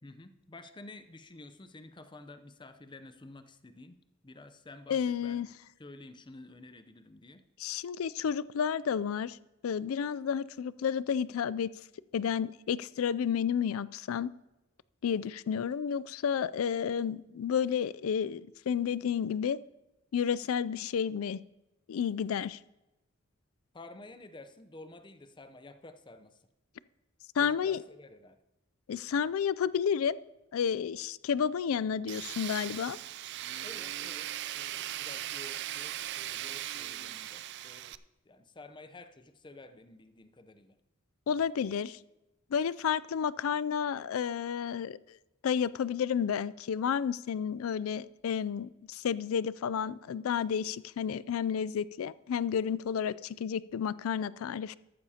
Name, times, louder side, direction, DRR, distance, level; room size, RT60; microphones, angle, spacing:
voice 1, 0.0-3.9 4.2-5.5 5.8-7.4 23.7-26.4 27.4-28.4 33.6-34.3 34.5-38.0 38.2-40.8, left 2 dB, 25° left, 10 dB, 0.6 m, -51 dB
voice 2, 4.9-5.5 7.6-9.4 9.6-11.7 12.1-14.3 15.0-19.6 20.1-21.4 21.9-22.6 27.4-27.8 28.9-30.2 30.5-33.0 41.3-42.0 42.5-45.0 45.4-54.7, left 7 dB, 85° left, 19 dB, 0.4 m, -31 dB
Tools, 32.1-38.0, right 13 dB, 55° right, 0.4 m, -39 dB
14.0 x 12.0 x 2.8 m, 0.98 s
head